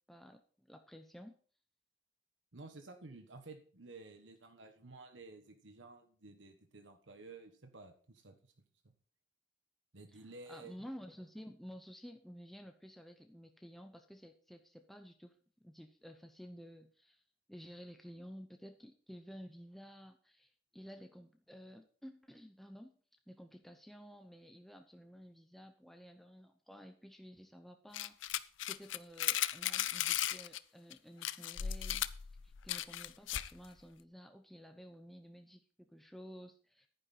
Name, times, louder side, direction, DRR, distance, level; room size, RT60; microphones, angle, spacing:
voice 1, 0.0-1.4 10.1-17.2 17.5-22.9 23.3-28.4 28.7-32.1 32.4-36.9, equal, ahead, 5 dB, 0.7 m, -53 dB
voice 2, 2.5-8.4 9.9-10.7, right 3 dB, 80° right, 6 dB, 1.3 m, -53 dB
sound 1, 27.9-30.6 30.9-31.0 31.2-33.6, left 12 dB, 85° left, 0.5 m, -36 dB
10.5 x 9.9 x 4.2 m, 0.43 s
head